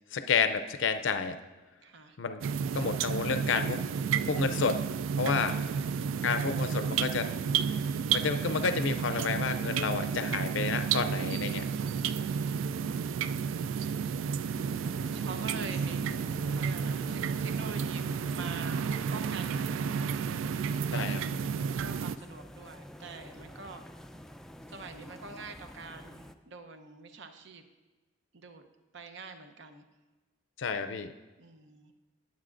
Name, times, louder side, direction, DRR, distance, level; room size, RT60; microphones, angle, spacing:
voice 1, 0.1-1.4 2.2-2.4 2.7-3.8 4.3-4.8 5.2-5.6 6.2-7.3 8.1-11.7 20.9-21.2 30.6-31.1, left 5 dB, 75° left, 10 dB, 0.5 m, -30 dB
voice 2, 1.8-2.2 5.4-6.3 11.6-12.9 15.1-20.5 20.9-23.9 24.7-27.6 28.3-28.6 28.9-29.9 31.4-31.9, right 4 dB, 65° right, 7 dB, 0.8 m, -46 dB
sound 1, 2.4-22.2, right 6 dB, 90° right, 0.3 m, -31 dB
sound 2, 14.4-26.3, equal, 5° left, 0.3 m, -49 dB
19.5 x 7.3 x 2.5 m, 1.2 s
head